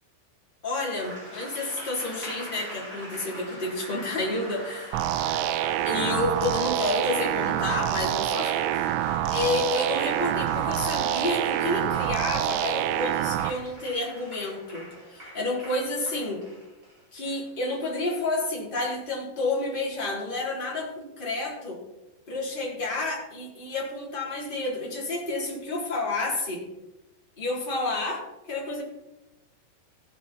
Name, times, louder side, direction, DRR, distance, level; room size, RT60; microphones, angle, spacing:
voice 1, 0.6-5.0 5.8-9.0 9.3-16.4 17.1-21.8 22.3-26.6 27.4-28.8, left 2 dB, 10° left, -4 dB, 3.2 m, -30 dB
Applause, 0.8-18.6, equal, 15° right, 5.0 m, -43 dB
sound 1, 4.9-13.5, right 12 dB, 85° right, 3.1 m, -26 dB
16.5 x 8.7 x 4.4 m, 0.96 s
omnidirectional pair, 5.3 m